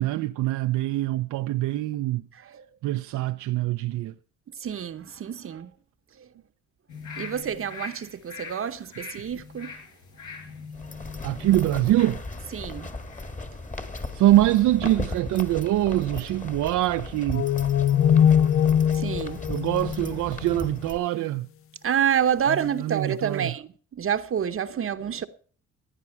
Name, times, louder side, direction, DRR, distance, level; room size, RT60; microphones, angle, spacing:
voice 1, 0.0-2.2 2.8-4.1 11.2-12.2 14.1-17.5 19.5-21.5 22.5-23.5, right 15 dB, 80° right, 0.6 m, -24 dB
voice 2, 2.3-2.7 4.6-5.7 6.2-6.3 7.2-9.7 12.5-12.9 14.8-14.9 18.9-19.4 21.8-25.3, right 8 dB, 45° right, 0.9 m, -28 dB
sound 1, 6.9-13.3 13.7-13.8, left 5 dB, 75° left, 6.9 m, -42 dB
sound 2, 10.7-21.0, left 2 dB, 25° left, 1.8 m, -37 dB
sound 3, 17.3-20.8, left 9 dB, 50° left, 0.5 m, -22 dB
16.0 x 9.9 x 4.5 m
cardioid pair, 90°, 30 cm